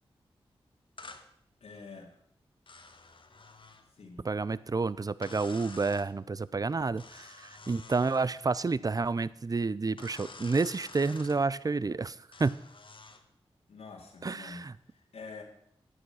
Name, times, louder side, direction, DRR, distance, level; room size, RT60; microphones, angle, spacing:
sound 1, 1.0-1.3 2.7-3.9 5.2-6.1 7.0-8.3 10.0-11.4 12.3-13.2, left 3 dB, 55° left, 1.3 m, -49 dB
voice 1, 1.6-2.2 3.9-4.3 13.7-15.4, left 4 dB, 85° left, 0 dB, 2.3 m, -47 dB
voice 2, 4.2-12.6 14.2-14.7, right 4 dB, 35° right, 19 dB, 0.5 m, -30 dB
11.5 x 8.4 x 5.7 m, 0.68 s
cardioid pair, 45°, 10 cm